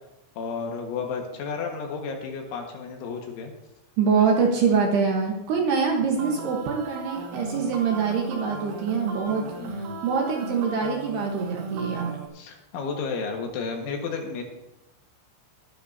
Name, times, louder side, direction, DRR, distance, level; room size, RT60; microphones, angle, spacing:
voice 1, 0.4-3.5 5.5-5.6 9.6-10.0 12.3-14.4, left 5 dB, 70° left, 2 dB, 3.9 m, -32 dB
voice 2, 4.0-9.4 10.0-12.2, right 5 dB, 70° right, 0 dB, 2.7 m, -24 dB
sound 1, 6.2-12.3, right 4 dB, 85° right, 4.1 m, -36 dB
22.0 x 10.0 x 2.8 m, 0.93 s
omnidirectional pair, 6.0 m